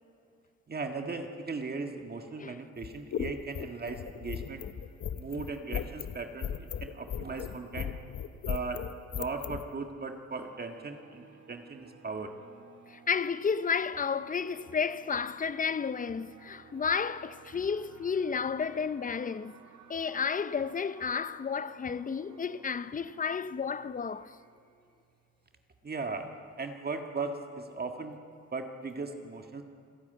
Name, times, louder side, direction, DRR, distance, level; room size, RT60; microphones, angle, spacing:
voice 1, 0.7-4.6 5.2-8.0 8.5-8.8 9.1-12.3 25.8-26.3 26.6-28.2 28.5-29.6, right 4 dB, 30° right, 1.7 m, -38 dB
sound 1, 2.8-9.6, left 8 dB, 50° left, 0.9 m, -36 dB
sound 2, 10.3-25.7, right 6 dB, 65° right, 1.9 m, -56 dB
voice 2, 12.9-19.5 19.9-24.4, left 6 dB, 25° left, 0.7 m, -32 dB
27.0 x 10.5 x 9.2 m
cardioid pair, 90°, 30 cm